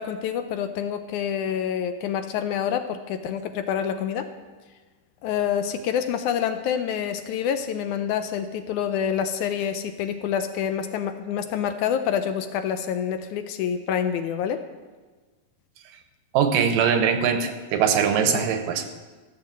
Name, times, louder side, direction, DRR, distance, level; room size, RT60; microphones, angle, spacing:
voice 1, 0.0-4.3 5.2-14.6 18.3-18.4, left 8 dB, 75° left, 8 dB, 1.9 m, -27 dB
voice 2, 16.3-19.0, right 7 dB, 80° right, 7 dB, 2.7 m, -22 dB
15.0 x 7.4 x 7.5 m, 1.3 s
omnidirectional pair, 3.8 m